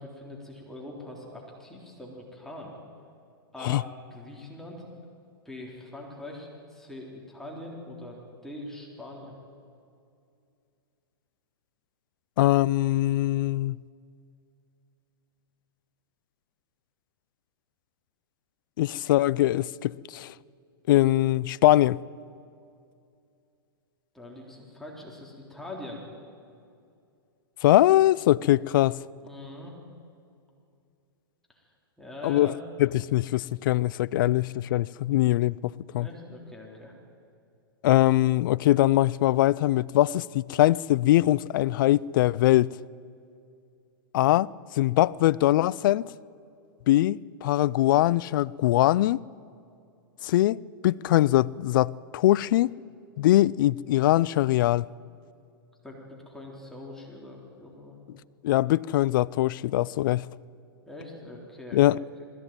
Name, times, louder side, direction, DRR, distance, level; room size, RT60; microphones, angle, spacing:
voice 1, 0.0-2.7 3.5-3.8 4.1-4.9 5.5-8.2 8.4-9.3 24.1-26.0 29.2-29.7 31.5-31.6 32.0-32.6 36.0-36.9 55.8-58.0 60.9-61.8 62.2-62.3, left 1 dB, 5° left, 3.7 m, -43 dB
voice 2, 12.4-13.8 18.8-20.3 20.9-22.0 27.6-29.0 32.2-32.5 32.8-36.1 37.8-42.7 44.1-46.1 46.9-49.2 50.2-52.7 53.2-54.9 58.4-60.3 61.7-62.0, left 15 dB, 60° left, 0.4 m, -22 dB
20.5 x 15.5 x 9.0 m
hypercardioid pair, 120°, 12 cm